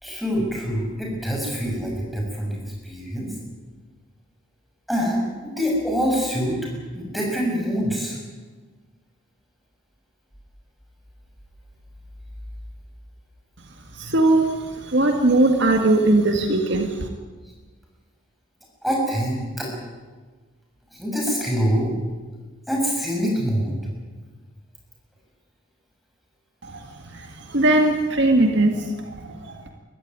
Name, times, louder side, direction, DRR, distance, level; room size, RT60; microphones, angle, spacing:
voice 1, 0.0-3.3 4.9-6.6 6.9-8.2 18.8-19.7 20.9-21.9 22.7-23.7, equal, ahead, -2 dB, 6.5 m, -25 dB
voice 2, 13.9-17.1 26.6-29.7, right 2 dB, 60° right, 4 dB, 2.0 m, -20 dB
23.5 x 14.5 x 9.6 m, 1.4 s
head